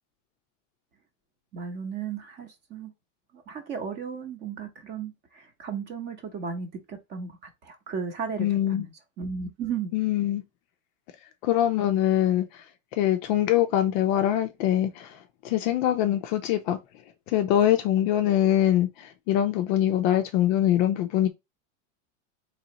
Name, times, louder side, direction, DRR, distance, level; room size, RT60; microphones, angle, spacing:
voice 1, 1.5-2.9 3.3-7.4 7.6-9.9, right 6 dB, 25° right, 0.8 m, -35 dB
voice 2, 8.4-8.9 9.9-10.4 11.4-12.6 12.9-15.2 15.4-16.8 17.3-21.3, left 12 dB, 40° left, 0.4 m, -23 dB
4.0 x 3.1 x 2.8 m
supercardioid pair, 160°, 38 cm